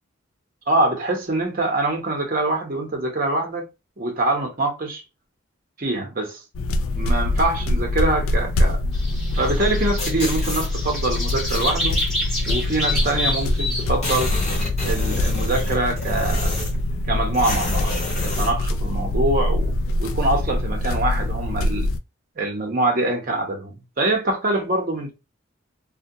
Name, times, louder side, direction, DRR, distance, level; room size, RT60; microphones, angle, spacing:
voice 1, 0.7-3.6 4.0-5.0 5.8-6.4 6.9-8.8 9.3-12.0 12.5-14.3 14.8-16.5 17.1-17.9 18.2-19.7 20.0-21.9 22.4-25.1, right 2 dB, 40° right, 0.7 m, -24 dB
sound 1, 6.5-22.0, left 1 dB, 80° left, 0.3 m, -24 dB
sound 2, 8.9-13.9, left 1 dB, ahead, 0.8 m, -28 dB
sound 3, 10.0-10.7 11.3-12.1 13.0-13.1 13.4-13.5 13.7-16.9 17.3-18.6, left 1 dB, 30° left, 1.0 m, -29 dB
2.2 x 2.1 x 2.6 m
head